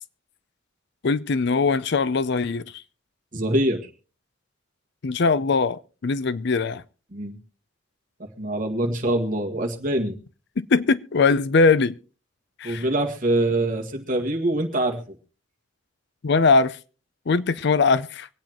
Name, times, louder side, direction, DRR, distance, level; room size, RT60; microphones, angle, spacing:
voice 1, 1.0-2.7 5.0-6.8 10.6-12.0 12.6-12.8 16.2-16.8 17.3-18.3, left 4 dB, 55° left, 0.5 m, -21 dB
voice 2, 3.3-3.8 7.1-7.4 8.4-10.2 12.6-15.0, right 1 dB, 40° right, 1.9 m, -24 dB
24.5 x 8.8 x 3.0 m
head